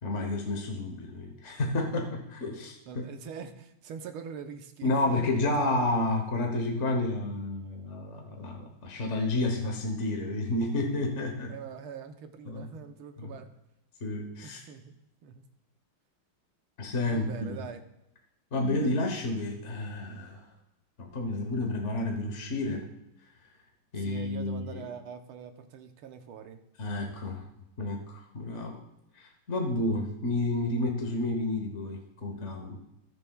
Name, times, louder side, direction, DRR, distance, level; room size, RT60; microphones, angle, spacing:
voice 1, 0.0-3.0 4.8-11.5 12.5-12.7 13.2-13.3 14.0-14.6 16.8-17.6 18.5-20.5 21.0-22.9 23.9-24.8 26.8-27.5 27.8-28.8 29.1-32.8, left 2 dB, 45° left, 2 dB, 1.1 m, -30 dB
voice 2, 2.9-5.3 5.6-5.9 11.5-13.5 14.4-15.0 15.2-15.4 17.1-17.8 24.0-26.6, right 7 dB, 90° right, 6 dB, 1.7 m, -43 dB
18.5 x 6.9 x 2.3 m, 0.88 s
omnidirectional pair, 2.3 m